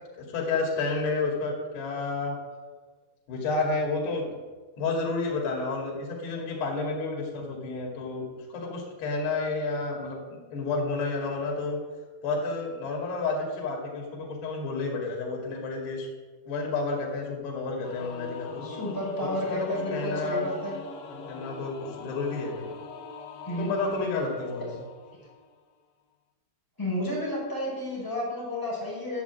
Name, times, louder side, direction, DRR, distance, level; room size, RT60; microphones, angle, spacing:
voice 1, 0.2-2.4 3.3-4.3 4.8-11.8 12.2-16.1 16.5-18.6 19.2-19.6 19.9-20.5 21.3-22.7 23.6-24.8, left 3 dB, 85° left, 0 dB, 4.7 m, -30 dB
Singing / Musical instrument, 17.8-25.6, left 5 dB, 65° left, 1.7 m, -42 dB
voice 2, 18.6-20.8 23.5-23.7 26.8-29.2, left 1 dB, 5° left, -5 dB, 5.3 m, -31 dB
14.0 x 7.3 x 8.4 m, 1.4 s
omnidirectional pair, 4.7 m